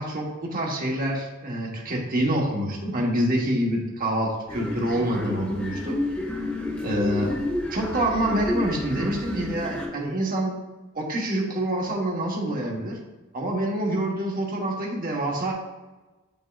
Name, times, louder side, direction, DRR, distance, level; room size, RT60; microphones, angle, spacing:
voice 1, 0.0-6.0 6.8-7.4 7.7-10.6 10.9-13.0 13.3-15.5, right 1 dB, 45° right, -1 dB, 1.2 m, -26 dB
sound 1, 4.5-9.9, left 1 dB, 5° left, 1.0 m, -30 dB
7.4 x 5.3 x 2.4 m, 1.2 s
head